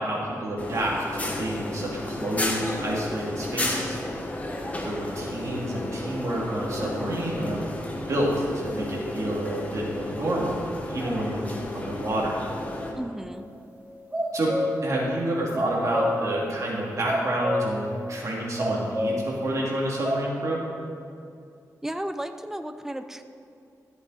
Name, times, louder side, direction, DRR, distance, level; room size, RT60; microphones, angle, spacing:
voice 1, 0.0-4.0 4.8-7.6 8.1-10.6 10.9-12.4 14.3-14.5 14.8-20.6, right 1 dB, 55° right, -4 dB, 2.6 m, -29 dB
sound 1, 0.6-12.9, left 1 dB, 25° left, 1.2 m, -33 dB
voice 2, 13.0-13.5 21.8-23.2, right 1 dB, 5° right, 9 dB, 0.5 m, -34 dB
sound 2, 13.3-13.4 13.9-14.8 15.3-16.2 16.7-16.8 17.1-17.7 18.2-18.3 18.6-19.3 19.7-20.2, left 1 dB, 25° right, 1.6 m, -28 dB
13.5 x 7.9 x 4.1 m, 2.5 s
wide cardioid pair, 115°, 6 cm